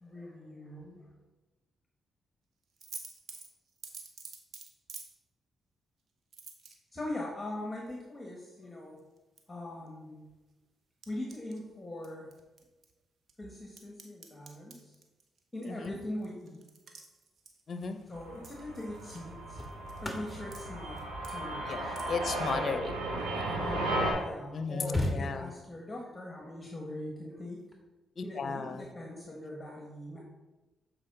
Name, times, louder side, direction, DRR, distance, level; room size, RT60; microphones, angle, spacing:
voice 1, 0.0-1.0 6.9-9.0 9.5-10.3 11.1-12.3 13.4-14.9 15.5-16.7 18.1-19.6 20.0-22.0 22.5-22.8 23.5-27.6 28.2-30.2, left 1 dB, 20° left, -1 dB, 1.4 m, -41 dB
sound 1, 2.8-5.1 6.3-7.1 9.0-9.4 9.9-10.0 11.0-11.6 12.0-12.9 13.3-18.1 18.4-19.3 19.6-20.6 21.0-21.4 21.7-22.1, right 5 dB, 60° right, 1.0 m, -49 dB
voice 2, 15.7-16.0 17.7-18.0 21.6-23.6 24.5-25.5 28.2-28.8, left 5 dB, 55° left, 9 dB, 0.6 m, -36 dB
sound 2, 17.9-18.2 19.1-23.7 24.3-24.4 24.6-25.8 27.5-27.7, left 1 dB, 5° left, 1.7 m, -39 dB
sound 3, 18.1-24.1, right 1 dB, 85° right, 2.1 m, -35 dB
7.3 x 4.8 x 3.9 m, 1.1 s
supercardioid pair, 50°, 0 cm